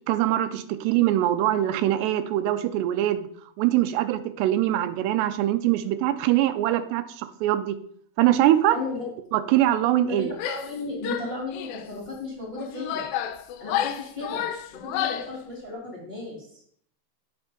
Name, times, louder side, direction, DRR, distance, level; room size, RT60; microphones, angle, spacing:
voice 1, 0.1-3.3 3.6-7.8 8.2-8.8 9.3-10.3, right 13 dB, 85° right, 11 dB, 2.8 m, -23 dB
voice 2, 8.7-9.1 10.1-13.1 13.6-14.4 14.7-16.6, left 2 dB, 15° left, -3 dB, 2.2 m, -35 dB
Female speech woman speaking / Yell, 10.3-10.8 11.0-11.9 12.5-15.4, left 10 dB, 90° left, 2.7 m, -31 dB
7.9 x 5.3 x 5.2 m, 0.63 s
omnidirectional pair, 4.8 m